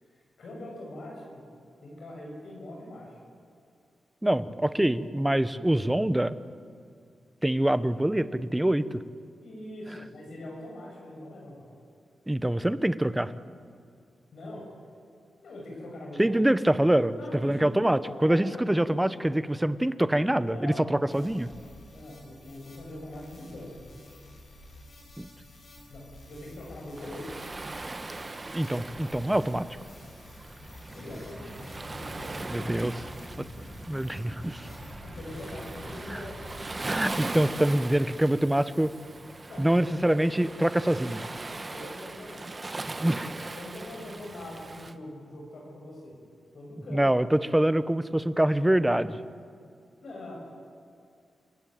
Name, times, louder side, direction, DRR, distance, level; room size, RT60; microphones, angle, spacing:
voice 1, 0.4-1.4 1.8-3.2 9.4-11.7 14.3-14.6 15.4-16.4 17.2-18.6 20.5-20.9 21.9-23.8 25.9-27.3 30.9-31.5 32.0-32.8 35.0-36.5 39.5-39.7 40.0-40.2 41.5-42.5 43.0-43.2 43.5-46.2 46.5-47.1 50.0-50.4, left 1 dB, 70° left, -2 dB, 7.0 m, -42 dB
voice 2, 4.2-6.4 7.4-9.0 12.3-13.3 16.2-17.2 17.4-21.5 25.2-25.3 28.5-29.7 32.5-32.9 33.4-33.5 33.9-34.7 36.1-36.2 36.9-38.9 39.6-41.2 43.0-43.3 46.9-49.2, right 1 dB, 10° right, 14 dB, 0.9 m, -25 dB
sound 1, 21.1-38.0, left 1 dB, 55° left, 6.8 m, -51 dB
Waves surf, 27.0-44.9, right 2 dB, 25° right, 1.0 m, -40 dB
sound 2, 30.9-36.8, equal, 10° left, 6.5 m, -45 dB
29.0 x 16.5 x 9.2 m, 2.3 s
wide cardioid pair, 115°, 0 cm